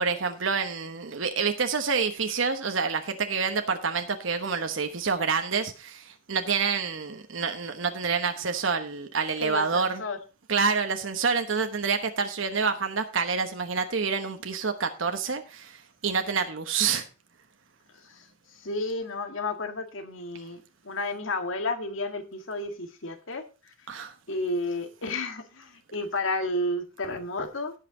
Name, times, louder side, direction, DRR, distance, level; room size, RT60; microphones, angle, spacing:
voice 1, 0.0-10.0 10.5-17.0 23.9-24.1, right 5 dB, 75° right, 7 dB, 1.1 m, -27 dB
voice 2, 9.4-10.2 18.0-18.3 18.5-23.4 24.3-27.7, left 2 dB, 75° left, 6 dB, 1.9 m, -32 dB
17.0 x 5.8 x 3.8 m, 0.32 s
head